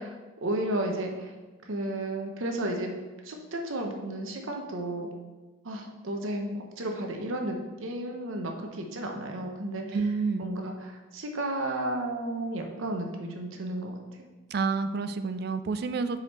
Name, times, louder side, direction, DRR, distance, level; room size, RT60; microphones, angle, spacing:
voice 1, 0.0-1.3 1.6-2.9 3.2-5.1 5.6-10.0 10.4-14.3, right 1 dB, 80° right, 3 dB, 0.8 m, -33 dB
voice 2, 9.9-10.4 14.5-16.2, right 4 dB, 50° right, 10 dB, 0.3 m, -29 dB
4.9 x 4.8 x 4.2 m, 1.2 s
head